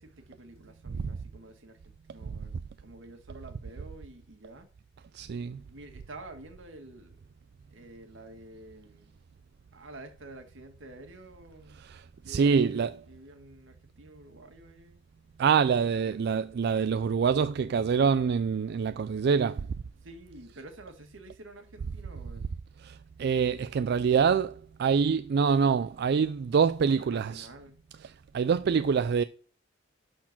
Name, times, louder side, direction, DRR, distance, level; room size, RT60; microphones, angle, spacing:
voice 1, 0.0-4.7 5.6-7.2 7.7-9.2 9.7-11.9 12.2-15.0 16.0-16.2 20.0-22.4 26.9-27.8, right 2 dB, 85° right, 1.8 m, -49 dB
voice 2, 5.1-5.6 11.8-13.0 15.4-19.7 22.8-27.5 28.3-29.2, right 6 dB, 60° right, 0.3 m, -25 dB
11.5 x 4.5 x 6.0 m
head